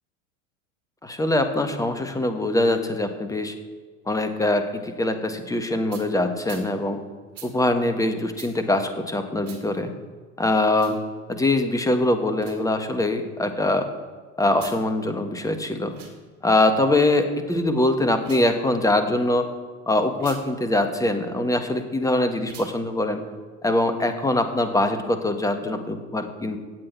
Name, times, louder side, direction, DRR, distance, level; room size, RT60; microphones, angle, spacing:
voice 1, 1.0-3.5 4.1-7.0 7.4-9.9 10.4-11.0 11.3-13.9 14.4-15.9 16.4-19.5 19.9-23.2 23.6-26.6, left 1 dB, 10° left, 8 dB, 1.3 m, -23 dB
sound 1, 5.9-6.1 6.4-6.7 7.3-7.5 8.3-8.5 9.4-9.6 10.7-11.0 12.3-12.6 14.5-14.8 15.8-16.1 18.1-18.5 20.1-20.4 22.4-22.7, right 6 dB, 65° right, 2.7 m, -43 dB
16.5 x 7.8 x 4.5 m, 1.5 s
figure-of-eight pair, 75°, 40 cm